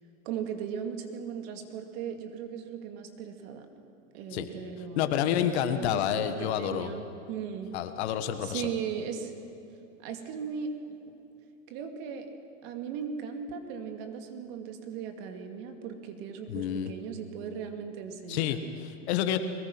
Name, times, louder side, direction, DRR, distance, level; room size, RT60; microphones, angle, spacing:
voice 1, 0.2-3.7 4.1-7.7 8.4-9.3 10.0-10.7 11.7-12.3 12.6-18.6, right 7 dB, 50° right, 5 dB, 2.4 m, -38 dB
voice 2, 5.0-7.0 7.7-8.7 16.5-16.9 18.3-19.4, left 10 dB, 55° left, 9 dB, 1.7 m, -29 dB
22.5 x 20.5 x 6.1 m, 2.7 s
hypercardioid pair, 135°, 39 cm